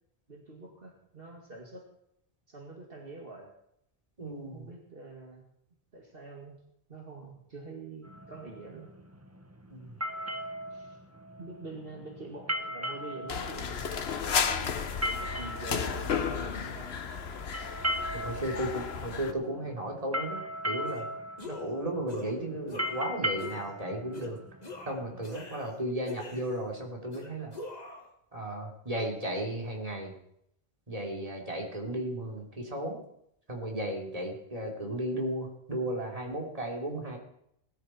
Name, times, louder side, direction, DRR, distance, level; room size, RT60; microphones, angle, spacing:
voice 1, 0.3-1.9 2.5-3.5 4.4-5.4 5.9-6.6 6.9-8.9 10.7-11.0 11.4-16.9, right 3 dB, 65° right, 0 dB, 2.5 m, -46 dB
voice 2, 4.2-4.7 9.7-9.9 18.1-21.1 21.4-24.4 24.9-27.5 28.3-30.1 30.9-33.0 33.5-37.2, right 1 dB, 35° right, 0 dB, 3.4 m, -35 dB
sound 1, 8.0-25.2, equal, 15° right, 1.0 m, -38 dB
sound 2, 13.3-19.3, left 6 dB, 80° left, 1.2 m, -33 dB
sound 3, 20.9-21.1 21.4-21.7 22.1-22.3 22.7-23.1 23.4-23.7 24.1-24.3 24.6-25.8 26.1-26.7 27.1-28.1, left 2 dB, 40° left, 2.0 m, -43 dB
19.5 x 13.0 x 4.5 m, 0.73 s
omnidirectional pair, 1.0 m